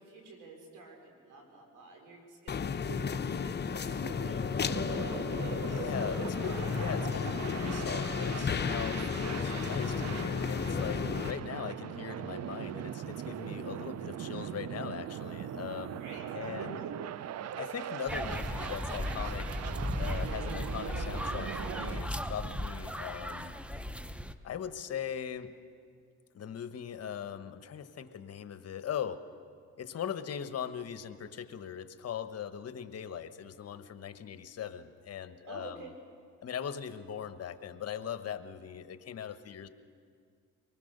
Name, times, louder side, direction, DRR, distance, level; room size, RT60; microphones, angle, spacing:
voice 1, 0.0-4.4 4.9-5.9 15.9-17.1 35.4-35.9, right 3 dB, 85° right, 1 dB, 4.8 m, -48 dB
sound 1, 2.5-11.3, left 6 dB, 35° left, 0.8 m, -33 dB
sound 2, 3.7-22.0, right 10 dB, 60° right, 0.6 m, -41 dB
voice 2, 5.7-16.0 16.3-16.8 17.6-19.6 20.0-23.5 24.4-25.5 26.3-29.2 29.8-35.8 36.4-39.7, left 8 dB, 55° left, 11 dB, 1.1 m, -40 dB
sound 3, 18.1-24.3, equal, 5° right, 0.8 m, -36 dB
24.5 x 19.5 x 6.7 m, 2.2 s
cardioid pair, 90°, 30 cm